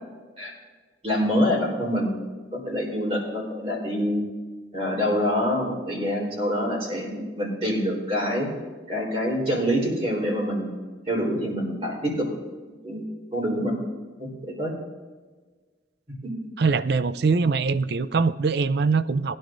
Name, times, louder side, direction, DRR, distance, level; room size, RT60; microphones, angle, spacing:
voice 1, 1.0-2.2 2.5-4.2 4.7-8.5 8.9-10.7 11.1-12.3 12.8-13.8 14.2-14.7 16.2-16.3, equal, 30° right, -2 dB, 3.8 m, -26 dB
voice 2, 16.6-19.4, right 4 dB, 55° right, 15 dB, 0.4 m, -22 dB
20.5 x 10.5 x 2.6 m, 1.4 s
head